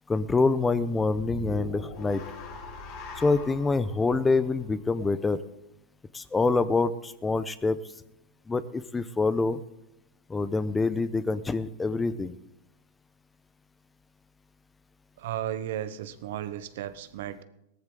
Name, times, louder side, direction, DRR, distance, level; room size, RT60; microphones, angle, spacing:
voice 1, 0.1-2.2 3.2-5.4 6.1-7.8 8.5-9.6 10.3-12.3, left 3 dB, 15° left, 14 dB, 0.8 m, -26 dB
sound 1, 1.1-5.4, left 3 dB, 55° left, 5.0 m, -42 dB
voice 2, 15.2-17.4, right 11 dB, 65° right, 13 dB, 1.1 m, -34 dB
17.5 x 14.0 x 3.9 m, 0.85 s
hypercardioid pair, 105°, 0 cm